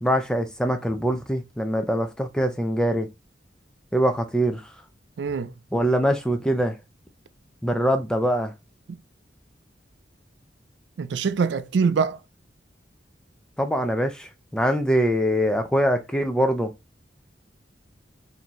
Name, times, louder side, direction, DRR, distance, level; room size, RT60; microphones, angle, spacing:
voice 1, 0.0-3.1 3.9-4.7 5.7-6.8 7.6-8.5 13.6-16.7, equal, 5° left, 0.5 m, -23 dB
voice 2, 5.2-5.5 8.9-9.0 11.0-12.2, right 5 dB, 75° right, 0.4 m, -24 dB
4.2 x 2.7 x 3.0 m
head